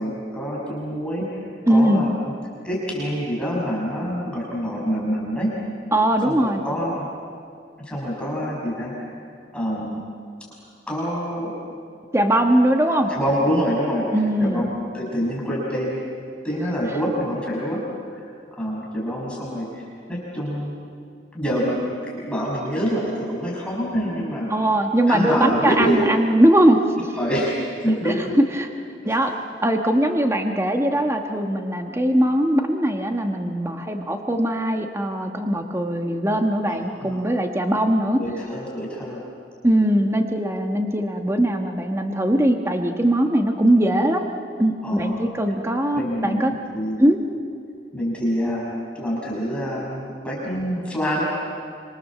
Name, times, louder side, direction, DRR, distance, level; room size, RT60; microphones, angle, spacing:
voice 1, 0.0-1.4 1.7-2.3 2.6-5.5 6.2-7.1 7.8-9.2 9.5-10.0 10.9-11.5 13.1-14.1 14.4-16.0 16.4-17.8 18.1-18.2 18.5-19.8 20.1-20.7 21.3-21.8 22.0-24.5 25.1-26.1 27.2-28.4 29.0-29.1 36.7-37.3 38.2-39.2 44.8-45.3 45.9-47.0 47.9-51.2, equal, 5° left, -5 dB, 6.2 m, -26 dB
voice 2, 1.7-2.0 5.9-6.6 12.1-13.1 14.1-14.6 24.5-27.1 27.9-28.7 29.0-29.3 29.6-38.2 39.6-44.3 44.6-46.5 47.0-47.2, right 1 dB, 15° right, 4 dB, 1.3 m, -20 dB
27.0 x 26.0 x 7.4 m, 2.3 s
head